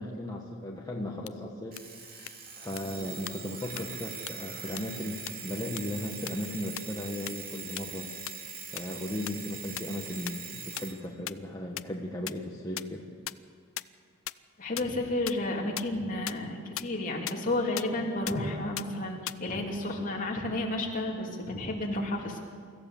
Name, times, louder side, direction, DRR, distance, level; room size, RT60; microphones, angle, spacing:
voice 1, 0.0-8.1 8.7-13.1, left 1 dB, 20° left, -2 dB, 1.4 m, -37 dB
sound 1, 1.3-1.4 1.8-1.9 2.3-2.4 2.8-2.9 3.3-3.4 3.8-3.9 4.3-4.4 4.8-4.9 5.3-5.4 5.8-5.9 6.3-6.4 6.8-6.9 7.3-7.4 7.8-7.9 8.3-8.4 8.8-8.9 9.3-9.4 9.8-9.9 10.3-10.4 10.8-10.9 11.3-11.4 11.8-11.9 12.2-12.3 12.8-12.9 13.3-13.4 13.8-13.9 14.3-14.4 14.8-14.9 15.3-15.4 15.8-15.9 16.3-16.4 16.8-16.9 17.3-17.4 17.8-17.9 18.3-18.4 18.8-18.9 19.3-19.4, left 14 dB, 65° left, 0.5 m, -34 dB
Alarm, 1.7-11.0, right 5 dB, 45° right, 2.4 m, -42 dB
voice 2, 14.6-22.4, left 1 dB, 40° left, -1 dB, 3.0 m, -31 dB
24.5 x 15.0 x 7.2 m, 2.1 s
head